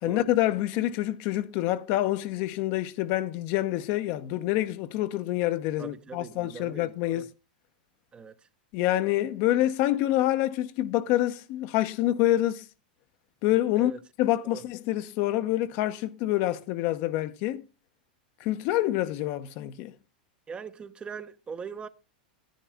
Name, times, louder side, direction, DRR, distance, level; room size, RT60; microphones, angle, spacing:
voice 1, 0.0-7.3 8.7-12.6 13.4-13.9 14.2-17.6 18.4-19.9, left 14 dB, 50° left, 0.8 m, -27 dB
voice 2, 5.8-7.3 8.1-8.3 13.8-14.0 14.4-14.6 20.5-21.9, right 6 dB, 20° right, 0.7 m, -41 dB
10.5 x 10.0 x 3.5 m
hypercardioid pair, 105°, 5 cm